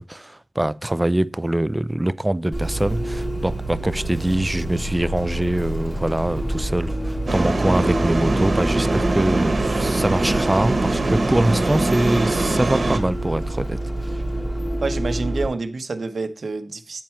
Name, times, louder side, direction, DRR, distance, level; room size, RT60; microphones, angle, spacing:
voice 1, 0.0-13.8, right 1 dB, 20° right, 0.5 m, -23 dB
Bus, 2.5-15.4, right 1 dB, 20° left, 2.9 m, -27 dB
sound 1, 7.3-13.0, right 2 dB, 65° right, 1.4 m, -23 dB
voice 2, 14.8-17.0, right 3 dB, 85° right, 0.9 m, -28 dB
9.0 x 4.4 x 5.6 m
wide cardioid pair, 65°, 0 cm